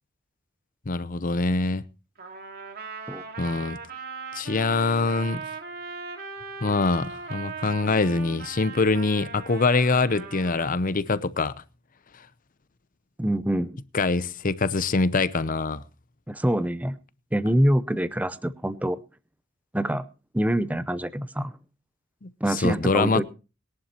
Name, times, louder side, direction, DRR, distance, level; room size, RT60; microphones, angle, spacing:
voice 1, 0.9-1.8 3.4-3.8 4.3-5.4 6.6-11.5 13.9-15.8 22.2-23.2, left 3 dB, 40° left, 0.7 m, -24 dB
Trumpet, 2.2-10.7, right 4 dB, 50° right, 2.8 m, -39 dB
voice 2, 13.2-13.8 16.3-17.0 17.3-19.0 19.7-20.0 20.3-21.6 22.4-23.2, right 1 dB, 10° right, 0.7 m, -25 dB
21.0 x 11.5 x 2.9 m
head